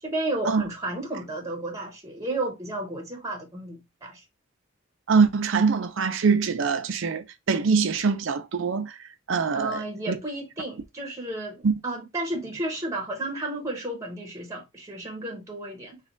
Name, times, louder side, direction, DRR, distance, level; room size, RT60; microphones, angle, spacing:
voice 1, 0.0-4.2 9.5-16.0, right 1 dB, 15° right, 1.0 m, -32 dB
voice 2, 5.1-8.9 9.3-10.2 11.6-11.8, right 5 dB, 70° right, 0.5 m, -23 dB
3.2 x 2.4 x 3.6 m
head